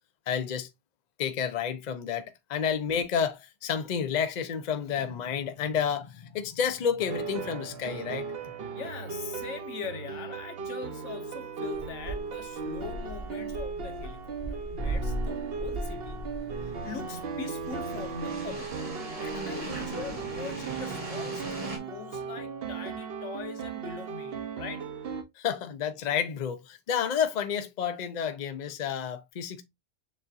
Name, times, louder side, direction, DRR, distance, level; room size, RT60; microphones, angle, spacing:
voice 1, 0.3-0.7 1.2-8.5 25.4-29.6, left 7 dB, 45° left, 0.6 m, -30 dB
sound 1, 7.0-25.2, right 5 dB, 60° right, 0.9 m, -37 dB
voice 2, 8.7-16.3 16.6-18.7 19.2-24.9, left 6 dB, 85° left, 1.2 m, -42 dB
sound 2, 11.7-21.8, right 1 dB, 35° right, 1.0 m, -38 dB
7.3 x 2.7 x 2.4 m
omnidirectional pair, 1.2 m